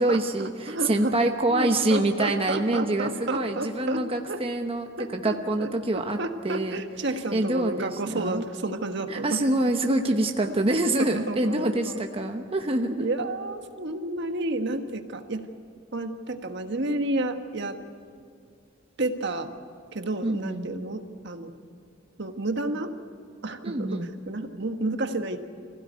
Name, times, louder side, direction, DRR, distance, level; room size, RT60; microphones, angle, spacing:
voice 1, 0.0-6.2 6.4-6.8 7.3-8.4 9.1-13.1 20.2-20.7 23.6-24.1, right 1 dB, 30° right, 4 dB, 1.0 m, -26 dB
voice 2, 0.7-4.4 5.0-5.7 6.2-9.4 11.1-12.0 13.0-15.4 15.9-17.8 19.0-19.5 19.9-21.5 22.2-22.9 23.4-25.4, right 2 dB, 65° right, 6 dB, 1.5 m, -31 dB
26.5 x 16.0 x 9.5 m, 2.3 s
head